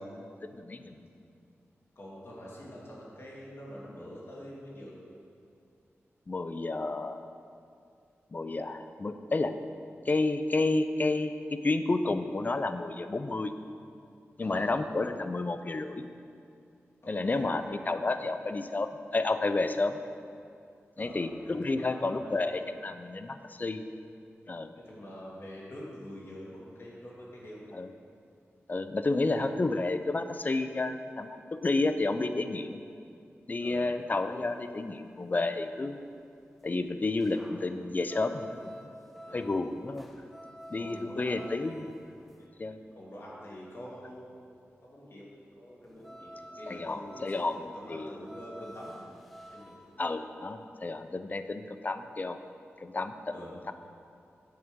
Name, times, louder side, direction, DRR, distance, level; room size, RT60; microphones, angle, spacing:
voice 1, 0.5-0.9 6.3-7.2 8.3-9.5 10.1-13.5 14.4-16.0 17.1-20.0 21.0-23.8 24.5-24.7 27.7-27.9 28.7-32.8 33.5-36.0 36.6-38.8 39.3-40.1 40.7-41.9 42.6-42.8 46.7-48.1 50.0-52.4 52.8-53.1, left 2 dB, 35° left, 9 dB, 0.5 m, -31 dB
voice 2, 2.0-5.0 14.4-14.8 17.0-17.6 21.0-22.3 24.7-27.7 29.1-29.4 33.6-33.9 39.3-39.5 40.8-41.7 42.4-42.5 43.0-44.3 44.8-45.3 45.6-49.0 49.5-49.7 53.3-53.5, equal, 55° left, -5 dB, 2.1 m, -46 dB
sound 1, 34.0-42.5 45.8-50.0, equal, ahead, 0.7 m, -50 dB
8.5 x 7.7 x 3.7 m, 2.4 s
cardioid pair, 65°, 5 cm